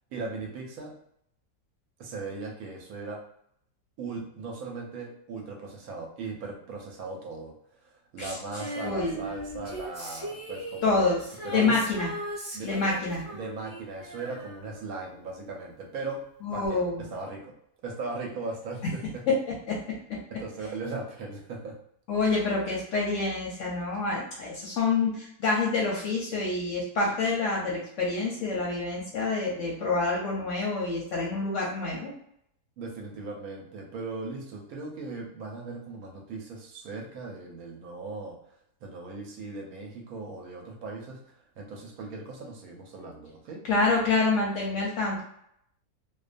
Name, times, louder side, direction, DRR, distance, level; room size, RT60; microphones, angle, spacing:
voice 1, 0.1-0.9 2.0-3.2 4.0-7.5 7.8-11.1 11.4-11.8 12.5-12.7 13.3-16.2 16.5-17.5 17.8-19.2 20.3-21.8 32.8-38.4 38.8-41.2 41.6-43.6, right 3 dB, 70° right, 0 dB, 1.0 m, -38 dB
Female singing, 8.5-15.5 16.6-16.7, right 1 dB, 25° right, 0.8 m, -39 dB
voice 2, 8.8-9.2 10.8-11.2 11.5-12.1 12.6-13.3 16.4-17.0 18.8-18.9 19.7-19.8 22.1-32.1 43.7-45.2, left 3 dB, 65° left, -3 dB, 0.8 m, -27 dB
2.6 x 2.2 x 2.4 m, 0.72 s
omnidirectional pair, 1.7 m